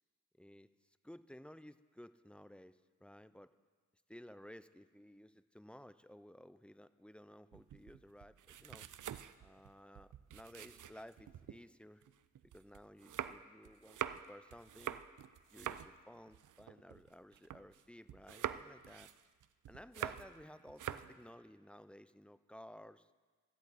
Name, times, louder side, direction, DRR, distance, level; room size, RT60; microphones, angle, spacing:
voice 1, 0.4-3.5 4.1-8.9 9.4-12.0 12.4-14.0 14.3-15.0 15.5-19.1 19.7-23.1, equal, 5° left, 14 dB, 0.4 m, -56 dB
sound 1, 7.5-11.6 12.0-17.8 18.1-20.4 20.7-21.2, right 10 dB, 70° right, 0.5 m, -45 dB
16.5 x 13.0 x 4.1 m, 1.5 s
wide cardioid pair, 85°, 31 cm